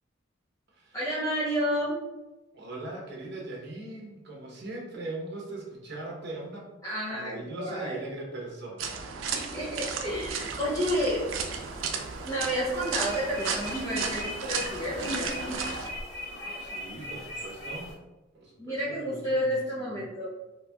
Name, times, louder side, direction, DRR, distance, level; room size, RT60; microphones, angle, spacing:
voice 1, 0.9-2.0 6.8-8.0 9.3-11.3 12.3-15.5 18.6-20.3, equal, 15° left, -8 dB, 0.6 m, -30 dB
voice 2, 2.5-6.7 7.1-8.9 16.6-17.9 18.3-19.4 19.9-20.0, right 2 dB, 60° right, -2 dB, 0.9 m, -40 dB
sound 1, 8.8-15.9, right 6 dB, 80° right, 0.4 m, -34 dB
sound 2, 10.1-17.9, left 1 dB, 75° left, 1.4 m, -39 dB
4.1 x 2.6 x 2.3 m, 1.0 s
head